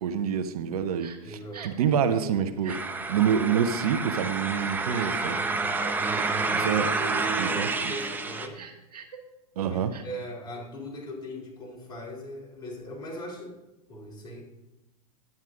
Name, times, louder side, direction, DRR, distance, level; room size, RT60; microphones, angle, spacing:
voice 1, 0.0-1.4 1.6-2.8 3.1-5.4 6.5-6.9 7.4-7.7 9.6-9.9, right 8 dB, 70° right, 11 dB, 0.8 m, -26 dB
Crying sobbing, 1.0-1.2 1.5-1.8 2.6-2.8 3.4-3.6 4.5-5.2 5.8-5.9 6.5-6.8 7.2-7.4 7.8-8.0 8.5-9.2 9.9-10.0, right 7 dB, 90° right, 1.3 m, -44 dB
voice 2, 1.2-2.5 4.9-5.5 6.0-8.7 9.6-14.4, equal, 20° left, -1 dB, 3.4 m, -40 dB
sound 1, 2.7-8.5, right 3 dB, 10° right, 0.7 m, -29 dB
11.0 x 8.9 x 3.7 m, 0.99 s
hypercardioid pair, 115°, 20 cm